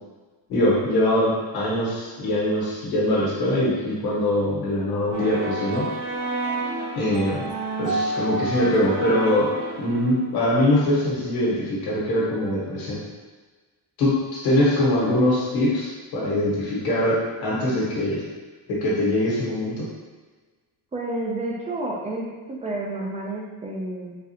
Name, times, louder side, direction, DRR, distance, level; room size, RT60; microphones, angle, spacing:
voice 1, 0.5-5.9 6.9-7.4 7.8-9.5 9.8-13.0 14.0-18.2 18.7-19.9, left 1 dB, 65° left, -6 dB, 1.4 m, -22 dB
sound 1, 5.1-10.3, right 2 dB, 45° right, 0.8 m, -29 dB
voice 2, 20.9-24.2, right 2 dB, 15° right, -2 dB, 0.4 m, -30 dB
4.0 x 2.4 x 2.8 m, 1.4 s
cardioid pair, 155°, 41 cm